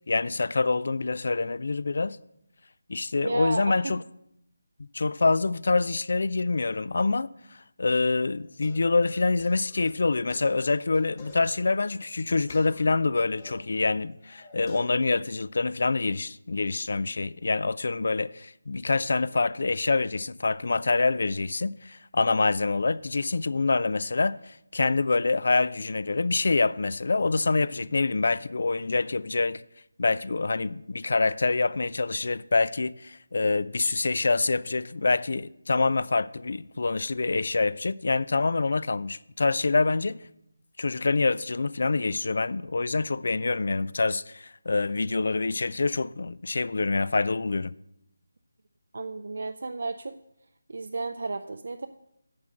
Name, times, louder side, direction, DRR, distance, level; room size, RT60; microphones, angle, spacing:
voice 1, 0.1-2.2 2.9-4.0 4.9-7.3 7.8-29.6 30.0-40.2 40.8-47.7, left 3 dB, 60° left, 0.3 m, -26 dB
voice 2, 3.2-3.9 48.9-50.1 50.7-51.9, right 3 dB, 65° right, 0.4 m, -33 dB
sound 1, 8.4-13.5 13.9-15.0, left 3 dB, 25° left, 1.4 m, -50 dB
9.4 x 6.2 x 6.2 m
figure-of-eight pair, 160°, 0 cm